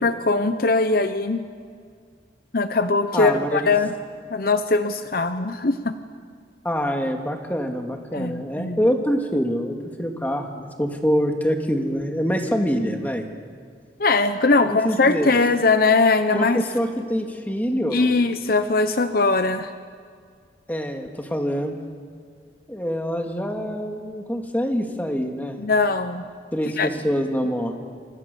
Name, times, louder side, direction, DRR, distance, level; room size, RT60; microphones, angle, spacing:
voice 1, 0.0-1.5 2.5-3.9 4.3-5.9 8.1-8.8 14.0-16.6 17.9-19.7 25.6-26.2 26.8-26.9, left 3 dB, 55° left, 10 dB, 0.8 m, -20 dB
voice 2, 3.1-3.7 6.6-13.3 14.6-15.3 16.3-18.1 20.7-21.8 22.7-25.6 26.5-27.7, equal, 10° left, 3 dB, 2.2 m, -25 dB
26.5 x 26.5 x 7.0 m, 2.1 s
head